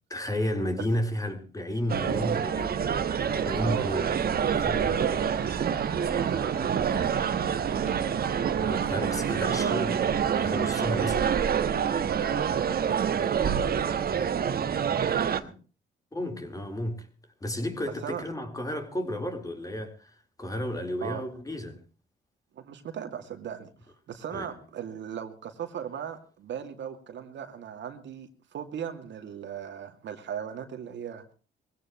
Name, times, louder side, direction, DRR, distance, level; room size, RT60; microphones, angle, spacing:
voice 1, 0.1-2.9 3.2-4.1 4.5-5.2 8.6-11.3 16.1-17.1 17.4-21.8 24.3-24.5, left 1 dB, 15° left, 3.9 m, -32 dB
sound 1, 1.9-15.4, right 7 dB, 50° right, 1.3 m, -27 dB
sound 2, 3.3-14.2, right 8 dB, 80° right, 2.1 m, -38 dB
voice 2, 6.0-8.0 12.1-14.4 14.9-15.6 17.8-18.2 21.0-21.2 22.5-23.7 24.1-31.2, right 8 dB, 65° right, 2.3 m, -37 dB
21.5 x 16.0 x 3.0 m
cardioid pair, 90°, 20 cm